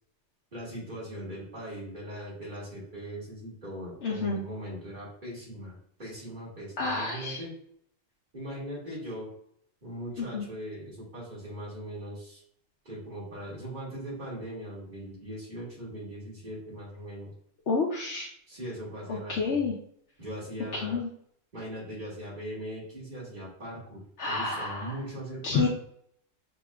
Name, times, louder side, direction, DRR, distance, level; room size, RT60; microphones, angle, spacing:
voice 1, 0.5-7.5 8.3-9.3 9.8-12.4 12.8-17.3 18.5-19.6 20.2-21.0 21.5-25.7, right 1 dB, 40° right, -7 dB, 2.1 m, -40 dB
voice 2, 4.0-4.4 6.8-7.4 10.3-10.4 17.7-18.3 19.1-19.7 20.7-21.1 24.2-24.9 25.4-25.7, left 4 dB, 65° left, -3 dB, 1.0 m, -29 dB
6.2 x 2.8 x 2.4 m, 0.65 s
omnidirectional pair, 1.3 m